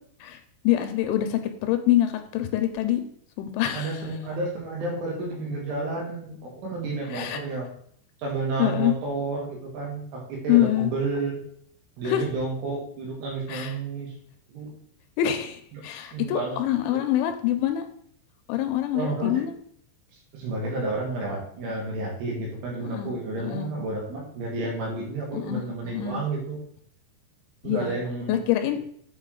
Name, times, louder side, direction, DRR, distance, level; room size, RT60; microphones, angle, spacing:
voice 1, 0.6-3.0 3.4-4.0 7.1-7.4 8.6-8.9 10.5-10.9 12.1-12.3 13.5-13.7 15.2-17.9 18.5-19.5 22.8-23.1 23.4-23.7 25.3-26.2 27.6-28.0 28.3-28.8, left 12 dB, 85° left, 7 dB, 2.9 m, -25 dB
voice 2, 3.7-7.7 8.2-11.4 12.0-14.1 14.5-14.8 15.7-15.8 16.1-16.6 16.9-17.0 18.9-19.4 20.3-26.6 27.6-28.5, right 3 dB, 85° right, -2 dB, 4.3 m, -31 dB
8.0 x 4.6 x 3.8 m, 0.64 s
omnidirectional pair, 5.5 m